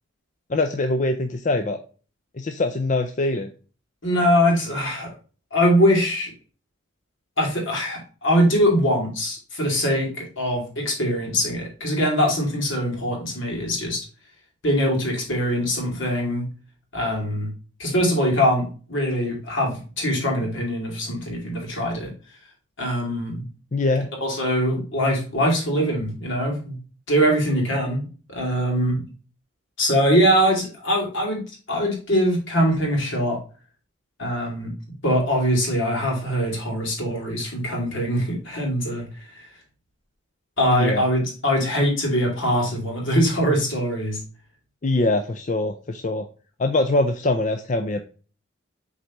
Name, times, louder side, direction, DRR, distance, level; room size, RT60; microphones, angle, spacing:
voice 1, 0.5-1.8 2.4-3.5 23.7-24.1 40.7-41.0 44.8-46.3 46.6-48.0, left 2 dB, 35° left, 6 dB, 0.4 m, -23 dB
voice 2, 4.0-5.1 5.5-6.3 7.4-14.0 14.6-16.4 16.9-17.5 17.8-22.1 22.8-23.4 24.2-26.8 27.1-29.0 29.8-33.4 34.2-34.7 35.0-39.0 39.3-39.5 40.6-44.2, equal, 70° left, 0 dB, 2.7 m, -22 dB
7.7 x 4.1 x 3.0 m, 0.37 s
head